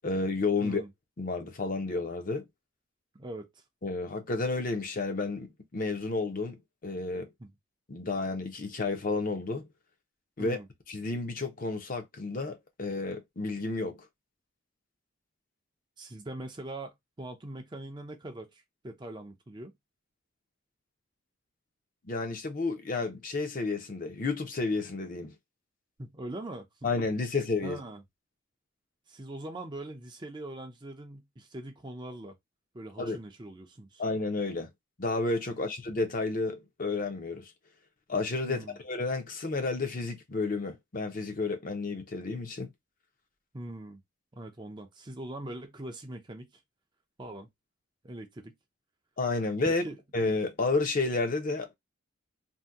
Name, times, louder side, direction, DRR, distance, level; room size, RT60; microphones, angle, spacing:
voice 1, 0.0-0.8 1.2-2.5 3.8-7.3 7.9-9.7 10.4-10.6 10.9-14.1 22.0-25.3 26.8-27.8 33.0-33.2 34.0-34.7 35.0-37.5 38.1-42.7 49.2-49.8 50.1-51.7, left 3 dB, 40° left, 0.6 m, -31 dB
voice 2, 3.1-3.6 7.4-7.5 10.4-10.7 16.0-19.7 26.0-26.9 27.6-28.0 29.1-32.4 32.7-34.0 35.5-35.7 38.4-38.8 43.5-44.0 44.3-46.5 47.2-47.5 48.0-48.5 49.7-50.0, right 1 dB, 20° right, 0.5 m, -42 dB
2.7 x 2.2 x 3.4 m
head